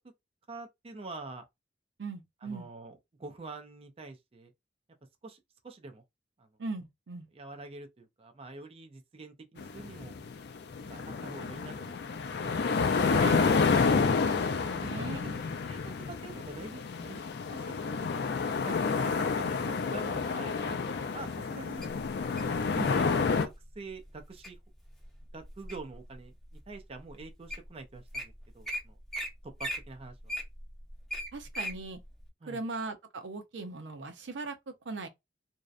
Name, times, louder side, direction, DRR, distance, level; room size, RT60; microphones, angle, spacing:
voice 1, 0.5-1.4 2.4-4.5 5.2-6.0 6.4-6.5 7.3-10.1 10.9-12.6 14.5-15.3 15.7-15.8 16.1-17.2 17.5-18.1 18.5-20.8 21.1-21.8 22.8-23.0 23.4-24.6 25.3-26.4 26.7-29.0 29.4-30.3 32.4-32.6, right 3 dB, 30° right, 0.4 m, -46 dB
voice 2, 2.0-2.7 6.6-7.3 13.1-13.5 14.6-15.4 22.7-22.9 31.3-32.0 32.5-35.1, right 3 dB, 85° right, 0.5 m, -39 dB
sound 1, 9.6-23.5, left 5 dB, 65° left, 0.4 m, -29 dB
Wild animals, 21.8-22.6 23.3-23.6 24.0-24.5 25.0-26.0 26.5-26.6 27.2-27.3 27.5-27.7 27.9-28.2 28.7-28.8 29.1-29.3 29.6-31.8 32.2-32.3, equal, ahead, 0.8 m, -37 dB
2.7 x 2.1 x 2.4 m
head